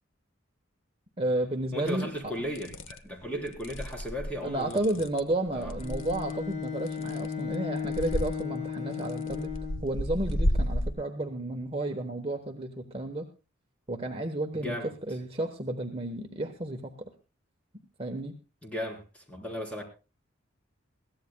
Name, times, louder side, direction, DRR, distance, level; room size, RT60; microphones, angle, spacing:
voice 1, 1.2-2.3 4.4-9.5 9.8-13.3 13.9-17.1 18.0-18.4, right 1 dB, 30° right, 4 dB, 1.1 m, -32 dB
voice 2, 1.7-4.9 5.5-5.7 14.5-14.9 18.6-19.8, equal, 5° left, 1 dB, 3.8 m, -36 dB
sound 1, 1.9-2.0 2.5-3.0 3.5-6.3 6.9-7.5 7.8-8.4 9.0-10.9, equal, 75° left, 1.0 m, -32 dB
Bowed string instrument, 5.8-9.9, left 6 dB, 35° left, 3.9 m, -35 dB
22.0 x 16.5 x 2.3 m, 0.32 s
head